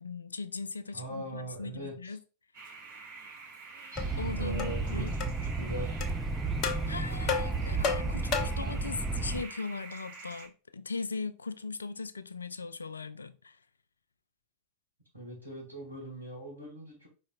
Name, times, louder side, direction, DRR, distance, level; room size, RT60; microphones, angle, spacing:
voice 1, 0.0-2.2 4.2-5.1 6.8-13.6, left 4 dB, 75° left, 0.4 m, -39 dB
voice 2, 0.9-2.1 4.4-5.1 5.4-6.0 15.1-17.1, right 1 dB, 85° right, 2.0 m, -41 dB
sound 1, 2.5-10.5, right 4 dB, 55° right, 2.6 m, -47 dB
sound 2, 4.0-4.1 4.6-4.8 5.2-5.3 6.0-6.1 6.6-6.8 7.3-8.7, left 5 dB, 40° left, 0.6 m, -32 dB
sound 3, 4.0-9.4, right 3 dB, 5° right, 0.4 m, -33 dB
5.2 x 3.7 x 2.5 m
figure-of-eight pair, 90°, 0 cm